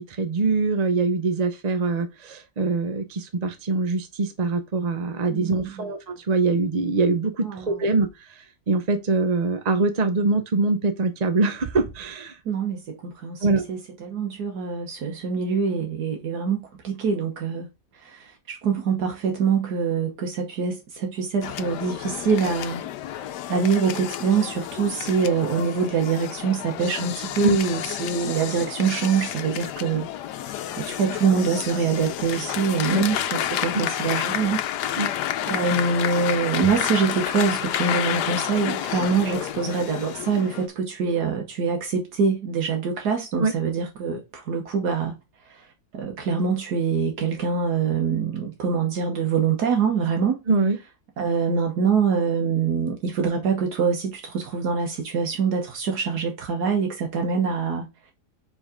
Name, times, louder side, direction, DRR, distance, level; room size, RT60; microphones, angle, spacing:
voice 1, 0.1-12.4 13.4-13.7 27.4-27.6 32.9-33.0 33.7-33.8 35.0-35.1 43.4-43.5 50.5-50.8, right 3 dB, 50° right, 0.5 m, -23 dB
voice 2, 5.3-5.9 7.4-7.9 12.4-17.7 17.9-30.0 30.8-35.2 35.5-45.1 45.4-45.7 45.9-50.4 51.2-57.9, right 5 dB, 75° right, 1.6 m, -25 dB
sound 1, 21.4-40.7, left 11 dB, 85° left, 1.2 m, -30 dB
5.0 x 3.9 x 4.9 m
omnidirectional pair, 1.7 m